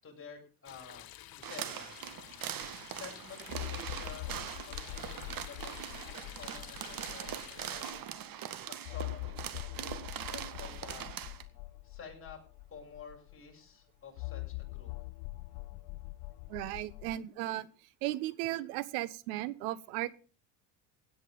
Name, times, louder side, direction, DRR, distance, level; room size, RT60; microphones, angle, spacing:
voice 1, 0.0-2.1 2.9-8.1 8.7-9.3 9.7-10.0 10.3-11.3 11.8-12.4 12.7-14.9, left 5 dB, 30° left, 1 dB, 7.4 m, -50 dB
sound 1, 0.6-7.9, left 14 dB, 55° left, 1.2 m, -51 dB
sound 2, 1.4-11.4, right 10 dB, 50° right, 1.9 m, -42 dB
sound 3, 2.6-2.7 3.5-8.0 8.8-13.5 14.2-17.2, left 22 dB, 80° left, 0.6 m, -44 dB
voice 2, 16.5-17.7 18.0-20.1, right 15 dB, 85° right, 18 dB, 1.2 m, -36 dB
16.5 x 9.9 x 5.4 m, 0.38 s
supercardioid pair, 110°, 44 cm